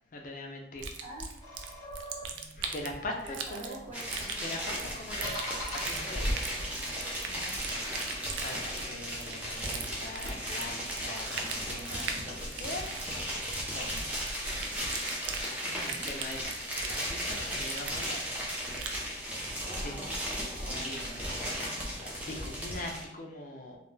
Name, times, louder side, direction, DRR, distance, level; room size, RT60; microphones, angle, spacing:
voice 1, 0.1-0.8 2.5-3.2 3.5-3.8 4.4-5.4 5.7-6.3 8.2-12.9 13.7-14.0 15.8-18.3 18.8-19.2 19.8-19.9 20.6-23.8, left 1 dB, 45° left, 1 dB, 0.4 m, -42 dB
sound 1, 0.8-19.0, right 5 dB, 75° right, 0.3 m, -41 dB
voice 2, 1.0-1.4 3.2-4.5 7.3-7.7 15.6-16.1 19.6-21.0, right 1 dB, 45° right, -9 dB, 0.9 m, -46 dB
sound 2, 1.4-4.2 4.9-6.8, left 1 dB, 20° left, 0.8 m, -44 dB
sound 3, 3.9-23.1, equal, 10° right, 0.5 m, -36 dB
2.3 x 2.1 x 3.1 m, 0.81 s
head